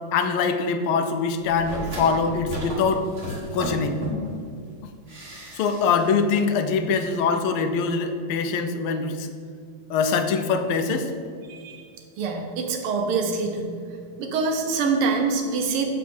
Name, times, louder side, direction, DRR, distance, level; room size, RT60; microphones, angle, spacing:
voice 1, 0.1-3.0 3.5-4.0 5.5-9.3 9.9-11.1, left 5 dB, 85° left, 7 dB, 1.5 m, -23 dB
sound 1, 1.4-4.4 5.1-6.1 6.4-6.5, equal, 40° right, 1.8 m, -34 dB
voice 2, 11.5-11.8 12.2-13.7 14.2-15.9, right 4 dB, 90° right, 3 dB, 1.7 m, -25 dB
7.3 x 4.8 x 4.3 m, 2.3 s
omnidirectional pair, 2.3 m